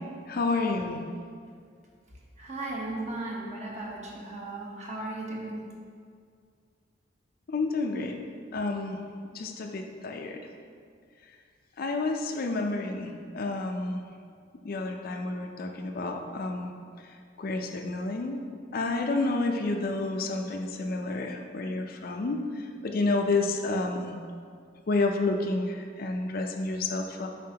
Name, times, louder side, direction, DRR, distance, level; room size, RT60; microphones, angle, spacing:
voice 1, 0.3-1.0 7.5-8.2 8.5-9.0 9.3-10.4 11.8-14.0 14.6-16.7 17.4-18.4 18.7-22.4 22.8-24.2 24.9-27.3, left 3 dB, 50° left, 4 dB, 0.5 m, -30 dB
voice 2, 2.4-5.6, right 2 dB, 40° right, -3 dB, 1.1 m, -36 dB
7.5 x 5.2 x 2.8 m, 2.2 s
head